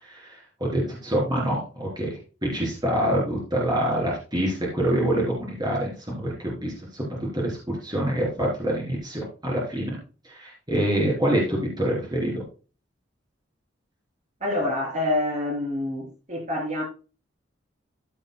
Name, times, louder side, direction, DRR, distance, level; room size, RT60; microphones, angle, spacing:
voice 1, 0.1-2.1 2.4-7.1 7.3-10.0 10.3-12.4, right 1 dB, 20° right, -4 dB, 3.7 m, -26 dB
voice 2, 14.4-16.8, left 1 dB, 35° right, -1 dB, 3.8 m, -27 dB
13.5 x 8.7 x 2.3 m, 0.33 s
head